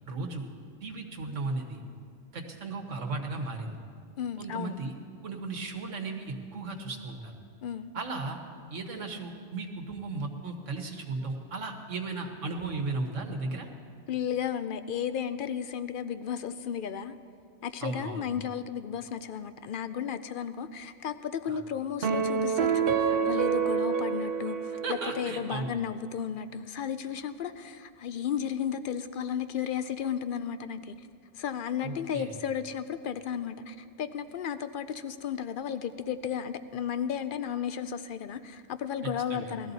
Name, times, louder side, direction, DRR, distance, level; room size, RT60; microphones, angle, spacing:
voice 1, 0.1-0.5 0.8-1.8 2.3-3.7 4.4-4.9 5.2-7.3 7.9-8.4 8.7-13.7 17.8-18.2 21.5-21.6 24.8-25.7 31.8-32.3 39.3-39.5, right 3 dB, 75° right, 3 dB, 1.6 m, -35 dB
voice 2, 4.2-4.8 7.6-7.9 14.1-17.2 17.6-31.1 31.4-39.7, left 8 dB, 65° left, 11 dB, 0.5 m, -34 dB
sound 1, 22.0-25.5, right 6 dB, 55° right, 0.8 m, -28 dB
18.5 x 13.0 x 4.1 m, 2.2 s
omnidirectional pair, 1.3 m